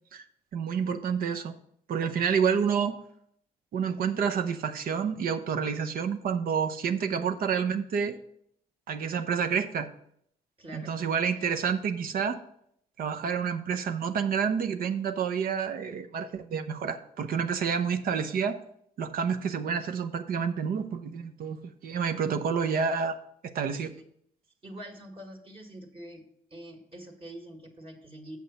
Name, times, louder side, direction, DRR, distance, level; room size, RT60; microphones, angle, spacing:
voice 1, 0.5-1.5 1.9-3.0 3.7-8.1 8.9-9.9 10.7-12.4 13.0-18.6 19.0-23.9, right 6 dB, 75° right, 8 dB, 0.7 m, -29 dB
voice 2, 10.6-11.0 23.6-24.1 24.6-26.2 26.5-28.4, right 1 dB, 35° right, 0 dB, 1.8 m, -45 dB
7.3 x 6.0 x 5.3 m, 0.69 s
cardioid pair, 75°, 15 cm